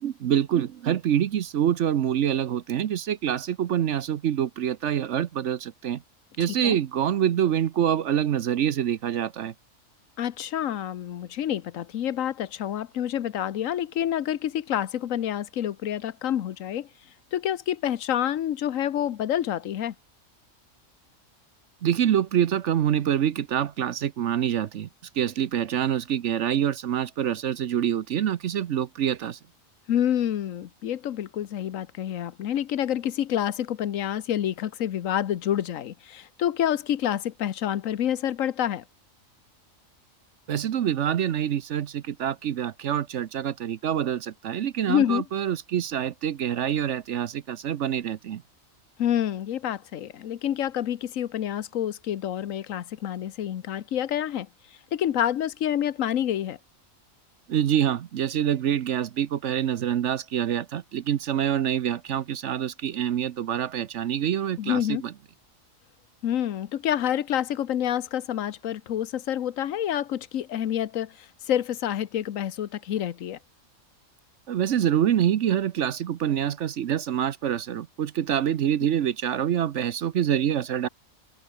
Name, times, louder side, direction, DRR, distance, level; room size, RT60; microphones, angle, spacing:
voice 1, 0.0-6.0 6.4-9.5 21.8-24.9 25.1-29.4 40.5-48.4 57.5-65.1 74.5-80.9, right 10 dB, 65° right, 1.0 m, -26 dB
voice 2, 10.2-16.9 17.3-19.9 29.9-38.8 44.9-45.2 49.0-56.6 64.6-65.0 66.2-73.4, left 10 dB, 80° left, 1.3 m, -28 dB
omnidirectional pair, 1.4 m